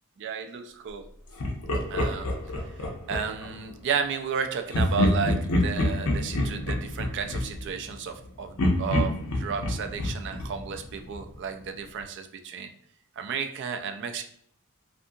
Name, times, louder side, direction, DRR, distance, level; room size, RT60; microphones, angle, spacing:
voice 1, 0.2-1.1 1.9-2.3 3.1-12.7 13.2-14.2, right 6 dB, 55° right, 7 dB, 0.3 m, -33 dB
Laughter, 1.4-3.5 4.7-8.2 8.6-11.3, left 1 dB, 80° left, 0.6 m, -27 dB
2.6 x 2.5 x 2.6 m, 0.64 s
head